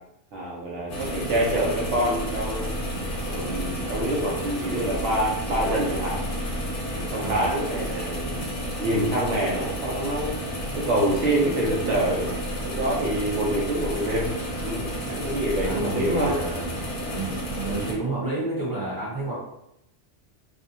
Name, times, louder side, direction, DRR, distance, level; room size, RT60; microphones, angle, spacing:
voice 1, 0.3-2.7 3.2-6.2 7.0-8.3 8.8-10.4 10.7-12.3 12.6-14.3 14.6-16.4, right 1 dB, 85° right, -3 dB, 0.9 m, -26 dB
sound 1, 0.9-17.9, equal, 55° left, 0.8 m, -31 dB
voice 2, 15.6-16.9 17.1-19.3, right 2 dB, 20° right, -7 dB, 0.9 m, -30 dB
2.6 x 2.0 x 2.6 m, 0.79 s
omnidirectional pair, 1.2 m